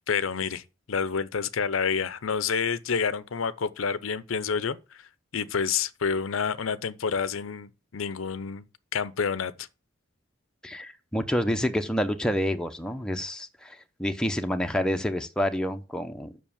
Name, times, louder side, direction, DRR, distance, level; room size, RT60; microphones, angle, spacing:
voice 1, 0.1-0.6 0.9-5.0 5.3-8.7 8.9-9.7, left 6 dB, 90° left, 0.7 m, -28 dB
voice 2, 10.6-16.3, equal, 5° left, 0.8 m, -28 dB
7.4 x 6.1 x 7.1 m
head